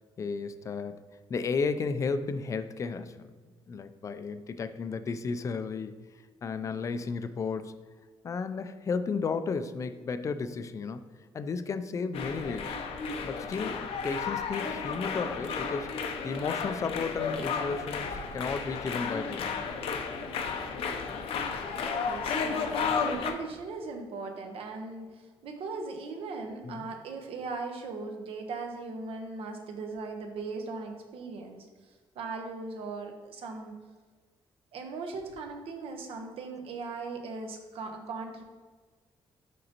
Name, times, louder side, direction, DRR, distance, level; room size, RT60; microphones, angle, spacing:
voice 1, 0.2-1.0 1.3-3.2 3.7-5.9 6.4-7.7 8.2-11.0 11.3-12.7 13.2-19.6 26.6-26.8, left 5 dB, 30° left, 11 dB, 0.3 m, -33 dB
sound 1, 12.1-23.3, left 5 dB, 75° left, 0.6 m, -33 dB
voice 2, 21.8-31.7 32.1-33.7 34.7-38.4, right 4 dB, 70° right, 3 dB, 0.9 m, -39 dB
6.5 x 5.3 x 2.9 m, 1.4 s
cardioid pair, 145°, 10 cm